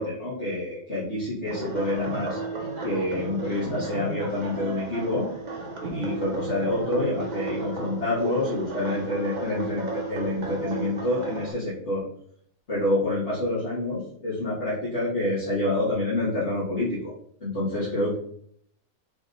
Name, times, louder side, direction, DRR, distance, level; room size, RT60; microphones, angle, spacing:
voice 1, 0.0-2.4 2.8-5.3 5.9-12.0 12.7-17.1 17.4-18.1, left 1 dB, 50° left, -11 dB, 2.6 m, -27 dB
sound 1, 1.4-11.5, right 2 dB, 35° right, 1.1 m, -33 dB
6.3 x 3.8 x 4.0 m, 0.63 s
omnidirectional pair, 1.5 m